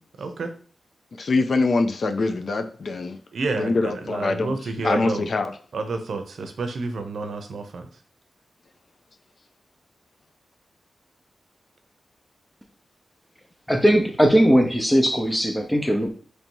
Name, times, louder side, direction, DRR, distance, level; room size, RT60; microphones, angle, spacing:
voice 1, 0.2-0.5 3.3-5.2 5.7-7.9, right 3 dB, 75° right, 6 dB, 0.6 m, -29 dB
voice 2, 1.2-3.2 3.6-5.5, left 3 dB, 55° left, 7 dB, 0.4 m, -24 dB
voice 3, 13.7-16.1, equal, 5° left, 4 dB, 0.6 m, -19 dB
3.2 x 2.6 x 4.5 m, 0.43 s
wide cardioid pair, 105°, 0 cm